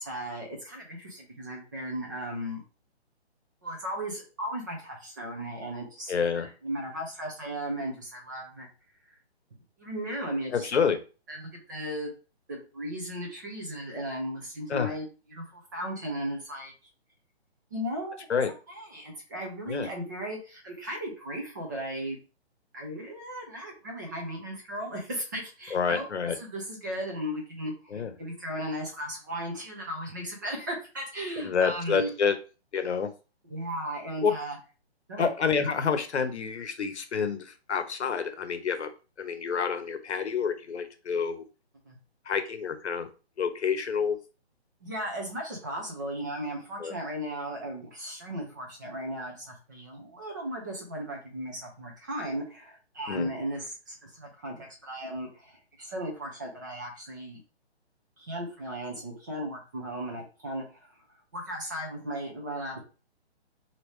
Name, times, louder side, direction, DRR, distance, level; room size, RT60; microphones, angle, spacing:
voice 1, 0.0-2.6 3.6-8.7 9.8-10.7 11.3-12.1 12.5-16.7 17.7-18.2 18.7-22.2 22.7-26.1 26.3-32.1 33.4-34.6 35.1-35.3 41.8-42.0 44.8-57.4 58.2-60.9 61.3-62.8, equal, 20° right, -1 dB, 0.6 m, -36 dB
voice 2, 6.1-6.5 10.5-11.0 14.7-14.9 18.3-18.5 19.7-19.9 25.7-26.4 27.9-28.1 31.4-32.3 32.7-33.1 34.2-34.3 35.2-38.9 39.2-41.4 42.3-43.1 43.4-44.2 46.8-46.9 53.1-53.3, left 6 dB, 80° left, 9 dB, 0.8 m, -28 dB
3.1 x 2.8 x 3.0 m, 0.33 s
hypercardioid pair, 160°, 33 cm